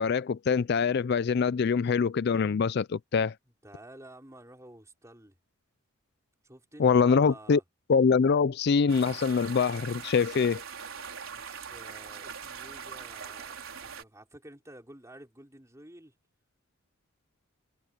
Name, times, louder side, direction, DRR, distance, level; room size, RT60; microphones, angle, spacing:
voice 1, 0.0-3.3 6.8-7.6 7.9-10.6, left 5 dB, 55° left, 0.4 m, -24 dB
voice 2, 3.6-5.4 6.4-7.6 11.3-16.1, right 1 dB, 15° right, 5.5 m, -51 dB
sound 1, 8.9-14.0, right 6 dB, 90° right, 4.3 m, -42 dB
head